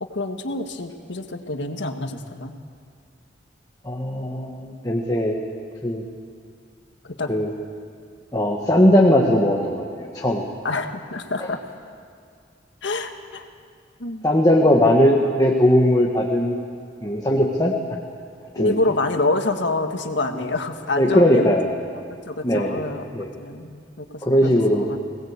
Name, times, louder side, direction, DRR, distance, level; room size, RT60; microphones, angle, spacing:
voice 1, 0.1-2.5 7.0-7.3 10.6-11.6 12.8-13.4 14.0-14.2 18.5-21.5 22.3-23.0 23.4-24.5 24.8-25.0, left 2 dB, 75° left, 6 dB, 1.6 m, -26 dB
voice 2, 3.8-5.4 5.8-6.0 7.3-7.5 8.3-10.5 11.4-11.5 14.2-16.6 17.0-17.7 18.5-18.7 20.3-20.4 21.0-21.7 22.4-22.8 23.1-23.3 24.2-24.8, left 1 dB, 20° left, 0 dB, 1.5 m, -19 dB
21.5 x 19.0 x 8.2 m, 2.2 s
head